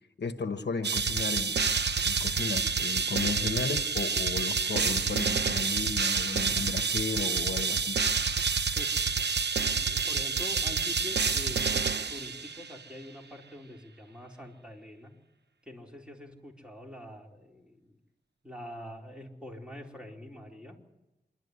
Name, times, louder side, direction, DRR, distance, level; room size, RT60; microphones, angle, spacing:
voice 1, 0.2-1.6 2.0-8.0, left 4 dB, 75° left, 9 dB, 1.1 m, -34 dB
sound 1, 0.8-12.7, right 5 dB, 75° right, 0.9 m, -28 dB
voice 2, 9.6-15.1 15.7-18.0 18.4-20.8, left 1 dB, 5° right, -1 dB, 4.0 m, -45 dB
27.0 x 12.0 x 9.5 m, 0.98 s
wide cardioid pair, 75°, 18 cm